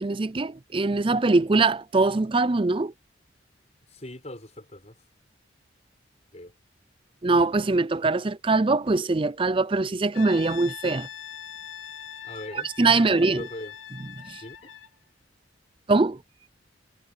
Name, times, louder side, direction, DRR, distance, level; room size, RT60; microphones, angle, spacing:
voice 1, 0.0-2.9 7.2-11.1 12.5-13.5 14.3-14.4 15.9-16.2, right 3 dB, 30° right, 0.5 m, -22 dB
voice 2, 3.9-5.0 6.3-6.5 12.2-13.7 14.4-14.7, left 1 dB, 35° left, 6.3 m, -41 dB
Brass instrument, 10.1-15.0, left 10 dB, 85° left, 2.9 m, -42 dB
head